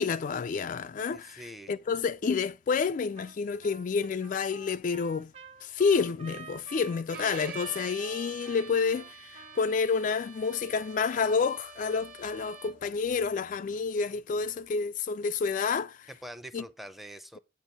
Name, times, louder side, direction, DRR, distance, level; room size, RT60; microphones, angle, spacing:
voice 1, 0.0-1.4 1.7-5.3 5.6-16.1 16.5-16.6, left 5 dB, 45° left, 0.3 m, -29 dB
voice 2, 1.1-1.7 16.2-17.4, equal, ahead, 0.6 m, -44 dB
Trumpet, 3.2-3.4 3.6-9.8, right 4 dB, 35° right, 0.8 m, -49 dB
Bowed string instrument, 7.1-12.9, right 5 dB, 50° right, 1.4 m, -46 dB
8.6 x 4.5 x 5.2 m
head